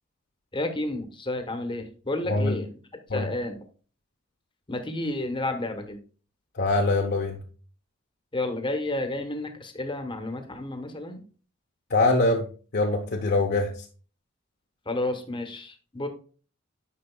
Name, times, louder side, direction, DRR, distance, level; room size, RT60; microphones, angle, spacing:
voice 1, 0.5-2.7 3.1-3.6 4.7-6.0 8.3-11.2 14.9-16.1, left 2 dB, 25° left, 6 dB, 1.0 m, -31 dB
voice 2, 2.3-2.6 3.1-3.3 6.5-7.4 11.9-12.5 12.7-13.7, left 2 dB, 50° left, 0 dB, 0.7 m, -23 dB
9.8 x 5.5 x 2.3 m, 0.39 s
head